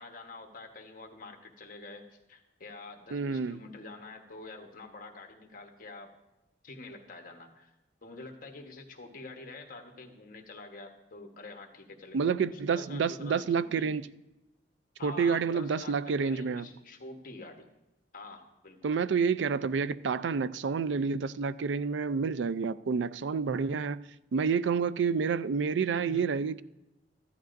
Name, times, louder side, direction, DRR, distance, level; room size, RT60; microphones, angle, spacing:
voice 1, 0.0-6.1 6.6-7.7 8.0-14.0 15.0-17.7 18.1-19.0 25.9-26.4, left 3 dB, 50° left, 1.2 m, -47 dB
voice 2, 3.1-3.6 12.1-14.1 15.0-16.7 18.8-24.0 24.3-26.6, right 5 dB, 85° right, 0.4 m, -29 dB
14.5 x 11.0 x 2.6 m
head